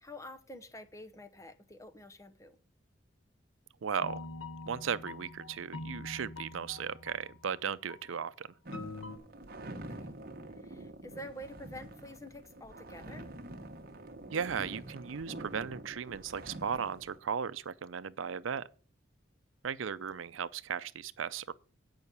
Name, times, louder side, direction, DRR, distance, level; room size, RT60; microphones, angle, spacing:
voice 1, 0.0-2.6 9.9-10.2 10.6-13.3, equal, 15° left, 0.8 m, -48 dB
voice 2, 3.8-4.2 4.7-8.5 14.3-18.7 19.6-21.5, right 7 dB, 85° right, 0.5 m, -36 dB
sound 1, 4.0-7.5 7.9-8.1 8.7-9.2, left 2 dB, 80° left, 1.7 m, -44 dB
sound 2, 8.6-17.2, right 1 dB, 50° right, 1.1 m, -46 dB
8.9 x 5.7 x 8.1 m
head